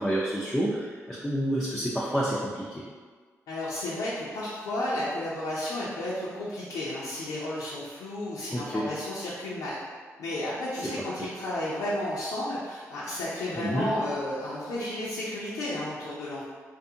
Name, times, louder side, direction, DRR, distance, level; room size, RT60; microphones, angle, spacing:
voice 1, 0.0-2.8 8.5-8.9 13.6-13.9, right 1 dB, 5° left, -6 dB, 0.4 m, -29 dB
voice 2, 3.5-9.8 10.2-16.4, left 1 dB, 90° left, -9 dB, 0.5 m, -32 dB
2.5 x 2.4 x 2.7 m, 1.5 s
cardioid pair, 60°, 6 cm